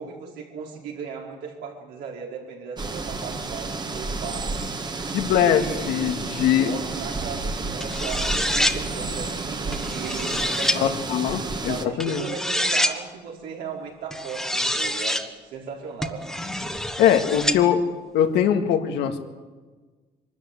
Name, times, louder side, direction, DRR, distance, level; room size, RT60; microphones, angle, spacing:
voice 1, 0.0-4.6 5.3-6.4 6.6-8.2 8.5-10.9 11.7-16.3, right 6 dB, 80° right, -1 dB, 4.7 m, -37 dB
sound 1, 2.8-11.9, right 3 dB, 25° right, 1.5 m, -31 dB
voice 2, 5.1-6.7 10.7-12.2 17.0-17.8 18.1-19.2, left 9 dB, 85° left, 6 dB, 1.9 m, -21 dB
sound 2, 7.8-8.8 9.7-10.8 12.0-13.0 14.1-15.2 16.0-17.6, left 1 dB, ahead, 1.4 m, -26 dB
23.0 x 13.5 x 9.6 m, 1.4 s
cardioid pair, 110°, 17 cm